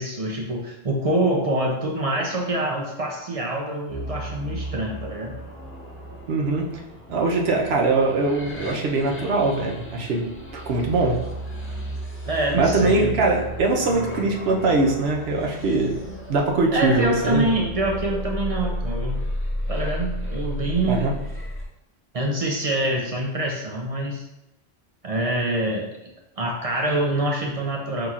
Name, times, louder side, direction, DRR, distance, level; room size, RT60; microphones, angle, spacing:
voice 1, 0.0-5.4 12.3-13.2 14.5-14.7 16.7-19.2 19.7-21.1 22.1-24.2 25.0-25.9 26.4-28.1, right 1 dB, 45° right, 0 dB, 0.5 m, -25 dB
sound 1, 3.9-21.7, equal, 20° left, 0.4 m, -33 dB
voice 2, 6.3-6.7 7.1-11.2 12.5-17.5 20.9-21.1, right 3 dB, 75° right, 0 dB, 0.9 m, -22 dB
5.4 x 2.9 x 2.4 m, 0.87 s
omnidirectional pair, 1.1 m